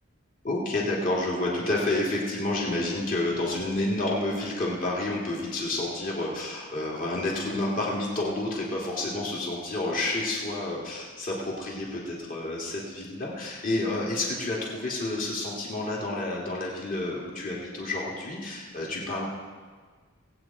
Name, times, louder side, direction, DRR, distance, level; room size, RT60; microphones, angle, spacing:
voice 1, 0.4-19.3, left 2 dB, 40° left, -4 dB, 2.9 m, -29 dB
19.5 x 8.9 x 4.4 m, 1.5 s
head